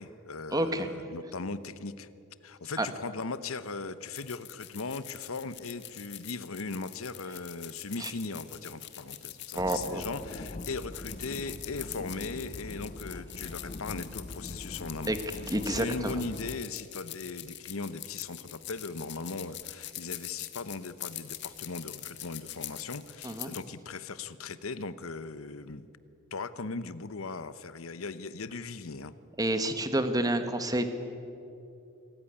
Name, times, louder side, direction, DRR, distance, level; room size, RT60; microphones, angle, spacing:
voice 1, 0.0-2.1 2.4-15.2 15.6-25.9 26.3-29.1, left 4 dB, 75° left, 14 dB, 0.9 m, -38 dB
voice 2, 0.5-0.9 2.8-2.9 8.0-8.1 9.5-10.0 15.1-15.2 15.5-16.2 23.2-23.5 29.4-30.9, right 1 dB, 15° right, 9 dB, 1.4 m, -29 dB
sound 1, 4.1-23.6, left 14 dB, 55° left, 1.5 m, -44 dB
sound 2, 9.6-16.6, left 2 dB, 35° left, 0.6 m, -43 dB
26.0 x 14.5 x 9.9 m, 2.7 s
head